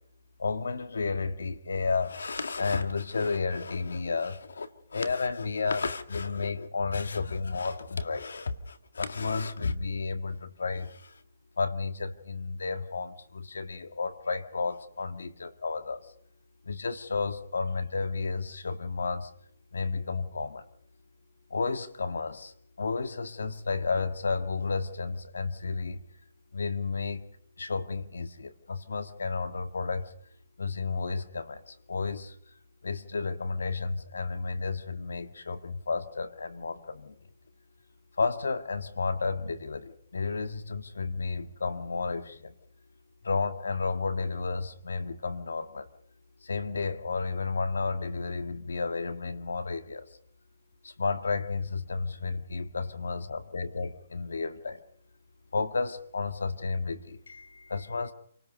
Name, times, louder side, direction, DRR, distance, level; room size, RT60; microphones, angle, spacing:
voice 1, 0.4-11.1 11.6-16.0 16.7-19.3 19.7-20.6 21.5-22.5 22.8-26.0 26.5-27.2 27.6-30.1 30.6-32.3 32.8-37.1 38.2-42.5 43.2-45.9 46.4-50.1 50.8-54.8 55.5-58.1, left 4 dB, 90° left, 10 dB, 1.8 m, -32 dB
27.5 x 19.0 x 5.3 m, 0.65 s
hypercardioid pair, 155°, 0 cm